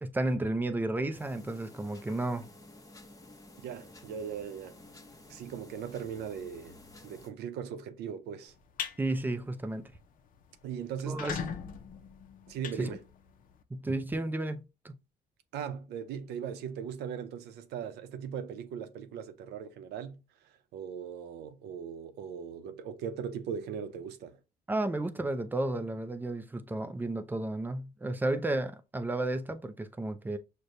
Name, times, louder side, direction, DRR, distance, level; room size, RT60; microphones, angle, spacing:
voice 1, 0.0-2.5 9.0-9.9 11.1-11.3 12.8-13.0 13.7-14.9 24.7-30.4, right 2 dB, 10° right, 0.5 m, -32 dB
sound 1, 1.1-7.3, left 2 dB, 20° left, 0.9 m, -52 dB
voice 2, 3.6-4.8 5.3-6.8 7.0-8.5 10.6-11.5 12.5-13.0 15.5-24.4, right 7 dB, 75° right, 0.7 m, -39 dB
sound 2, 8.5-9.0 9.4-9.6 10.0-10.1 10.3-10.4 11.0-13.5, left 7 dB, 55° left, 0.6 m, -39 dB
6.3 x 2.2 x 2.6 m
cardioid pair, 110°, 17 cm